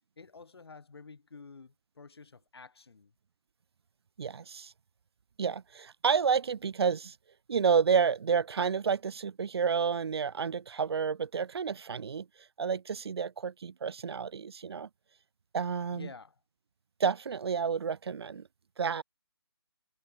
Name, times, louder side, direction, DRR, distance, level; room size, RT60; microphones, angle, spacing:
voice 1, 0.2-3.1 15.9-16.4, left 4 dB, 65° left, 4.2 m, -50 dB
voice 2, 4.2-4.7 5.4-7.2 7.5-12.3 12.6-14.9 15.5-16.1 17.0-18.5 18.8-19.0, right 6 dB, 65° right, 0.4 m, -30 dB
hypercardioid pair, 175°, 14 cm